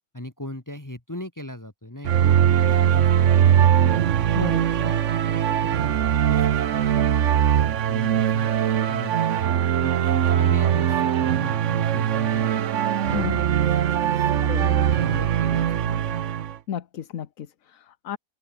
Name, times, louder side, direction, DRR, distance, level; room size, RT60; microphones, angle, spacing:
voice 1, 0.1-4.1 4.5-7.4 7.9-9.3 9.8-13.6 14.0-16.2, left 1 dB, 15° left, 1.8 m, -39 dB
sound 1, 2.0-16.6, right 10 dB, 60° right, 1.1 m, -21 dB
voice 2, 13.1-13.4 14.4-14.7 16.7-18.2, left 9 dB, 65° left, 1.4 m, -32 dB
open air
omnidirectional pair, 1.5 m